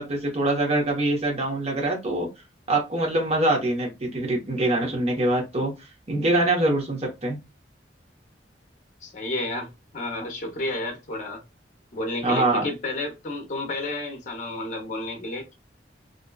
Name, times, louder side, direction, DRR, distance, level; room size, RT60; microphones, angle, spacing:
voice 1, 0.0-2.3 2.7-5.7 6.1-7.4 12.2-12.7, right 2 dB, 35° right, 0.9 m, -24 dB
voice 2, 9.0-11.4 11.9-15.5, left 2 dB, 45° left, 0.7 m, -31 dB
2.5 x 2.2 x 2.2 m
head